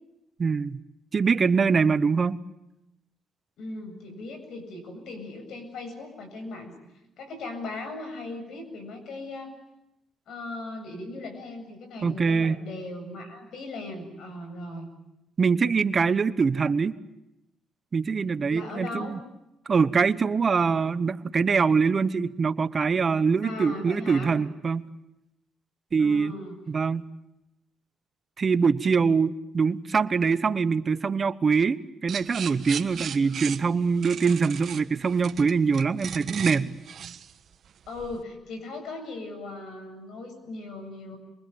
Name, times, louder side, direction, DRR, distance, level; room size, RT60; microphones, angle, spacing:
voice 1, 0.4-0.8 1.1-2.4 12.0-12.6 15.4-16.9 17.9-19.2 19.7-24.8 25.9-26.3 26.7-27.0 28.4-36.8, right 5 dB, 40° right, 14 dB, 1.0 m, -23 dB
voice 2, 3.6-6.7 7.2-9.5 10.3-14.9 18.5-19.2 23.4-24.3 26.0-26.6 37.9-41.2, left 2 dB, 75° left, 6 dB, 7.9 m, -38 dB
sound 1, 32.1-38.2, right 8 dB, 60° right, 1.4 m, -37 dB
27.0 x 23.5 x 8.8 m, 0.89 s
cardioid pair, 90°, 0 cm